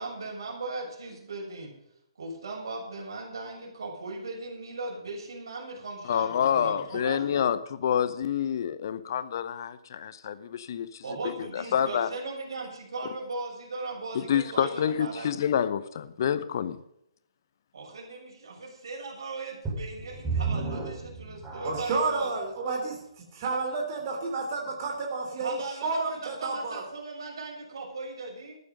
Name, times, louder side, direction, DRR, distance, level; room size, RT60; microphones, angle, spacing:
voice 1, 0.0-1.7 2.2-7.5 11.0-15.6 17.7-22.3 25.4-28.6, right 3 dB, 55° right, 6.8 m, -38 dB
voice 2, 6.1-10.9 11.5-12.1 14.3-16.8, left 8 dB, 45° left, 0.8 m, -27 dB
sound 1, 19.6-22.1 22.7-22.8 23.4-23.5, right 5 dB, 10° right, 5.9 m, -33 dB
voice 3, 21.6-23.0 23.3-26.8, right 3 dB, 35° right, 3.3 m, -31 dB
14.0 x 12.0 x 5.4 m
figure-of-eight pair, 130°, 3 cm